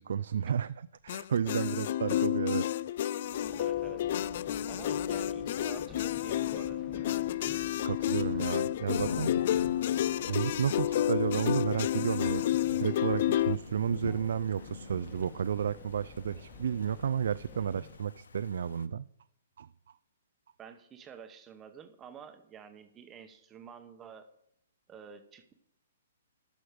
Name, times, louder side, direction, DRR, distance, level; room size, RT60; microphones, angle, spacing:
voice 1, 0.0-2.7 7.8-9.3 10.3-19.0 19.6-19.7, right 8 dB, 75° right, 14 dB, 0.3 m, -32 dB
sound 1, 1.1-13.6, left 12 dB, 55° left, 0.3 m, -30 dB
Subway metro underground, 3.2-18.1, left 3 dB, 20° left, 1.8 m, -51 dB
voice 2, 3.5-4.1 4.7-7.3 20.6-24.3 24.9-25.5, right 7 dB, 20° right, 8 dB, 0.9 m, -50 dB
Thunder / Rain, 8.9-18.8, left 5 dB, 85° left, 0.6 m, -43 dB
13.0 x 6.2 x 5.0 m, 0.73 s
hypercardioid pair, 140°, 0 cm